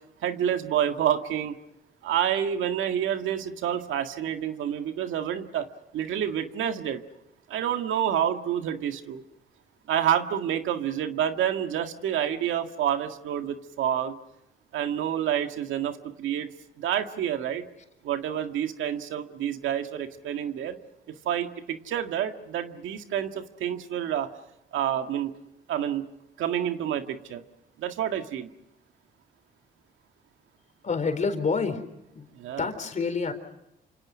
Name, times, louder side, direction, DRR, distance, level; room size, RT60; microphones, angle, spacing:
voice 1, 0.2-1.6 2.0-5.7 5.9-7.0 7.5-9.2 9.9-14.1 14.7-16.5 16.8-17.6 18.0-20.8 21.1-24.3 24.7-25.3 25.7-26.0 26.4-27.4 27.8-28.5 32.4-32.7, right 10 dB, 80° right, 6 dB, 1.9 m, -28 dB
voice 2, 30.8-31.8 32.1-32.3 32.6-33.3, left 4 dB, 40° left, 8 dB, 4.2 m, -27 dB
28.5 x 26.5 x 6.3 m, 0.86 s
cardioid pair, 90°, 20 cm